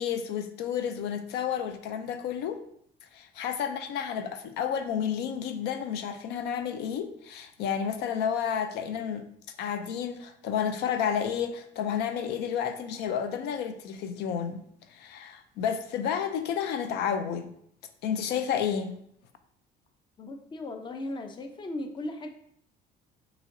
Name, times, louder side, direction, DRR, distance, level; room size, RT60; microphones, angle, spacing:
voice 1, 0.0-2.6 3.0-9.2 9.6-14.6 14.9-17.5 18.0-19.0, left 8 dB, 80° left, 8 dB, 0.4 m, -31 dB
voice 2, 20.2-22.3, left 2 dB, 25° left, 6 dB, 0.5 m, -37 dB
5.4 x 3.0 x 2.6 m, 0.68 s
cardioid pair, 110°, 17 cm